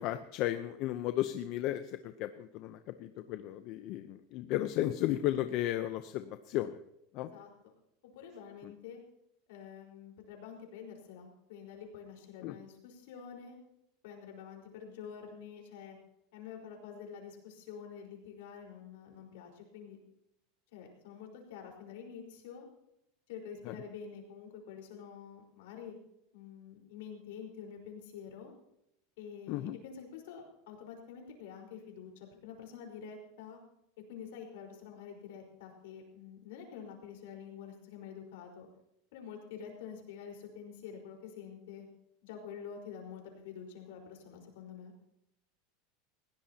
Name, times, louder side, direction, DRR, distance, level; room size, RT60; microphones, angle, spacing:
voice 1, 0.0-6.8 7.1-7.3 8.6-8.7 12.4-12.6 23.6-23.7 29.5-29.8, left 13 dB, 50° left, 9 dB, 0.7 m, -34 dB
voice 2, 7.3-7.7 8.1-9.0 9.5-13.6 14.0-16.0 16.3-20.0 20.7-22.6 23.3-26.0 26.3-28.5 29.2-33.6 34.1-38.7 39.1-41.9 42.2-44.9, left 7 dB, 75° left, 1 dB, 4.6 m, -47 dB
20.0 x 16.5 x 2.9 m, 0.82 s
supercardioid pair, 135°, 0 cm